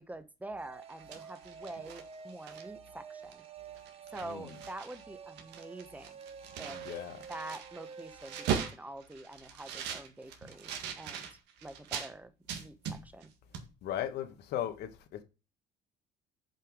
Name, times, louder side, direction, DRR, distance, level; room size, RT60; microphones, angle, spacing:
voice 1, 0.0-3.4 4.1-6.2 6.6-6.8 7.3-10.7 11.0-11.3 11.6-12.3 12.6-13.3, right 2 dB, 10° right, 1.1 m, -46 dB
sound 1, 0.6-8.7, right 6 dB, 35° right, 0.9 m, -49 dB
sound 2, 0.8-2.9 3.3-3.5 3.8-5.0 5.3-12.1 12.5-13.3 13.5-13.7, right 8 dB, 90° right, 1.7 m, -40 dB
voice 2, 4.2-4.6 6.7-7.2 13.8-15.2, left 11 dB, 75° left, 1.4 m, -37 dB
6.8 x 5.6 x 4.9 m
cardioid pair, 110°, 17 cm